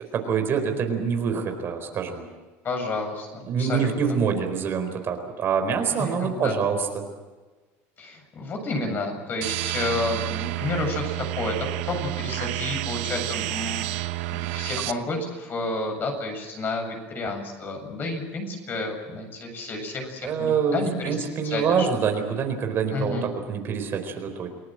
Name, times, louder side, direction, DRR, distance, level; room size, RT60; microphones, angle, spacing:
voice 1, 0.0-2.3 3.4-7.0 20.2-24.5, right 6 dB, 40° right, 5 dB, 4.4 m, -26 dB
voice 2, 2.6-4.2 6.0-6.5 8.0-21.9 22.9-23.3, left 2 dB, 35° left, 4 dB, 7.4 m, -31 dB
sound 1, 9.4-14.9, right 18 dB, 80° right, 1.2 m, -30 dB
29.0 x 19.0 x 7.7 m, 1.3 s
cardioid pair, 140°, 6 cm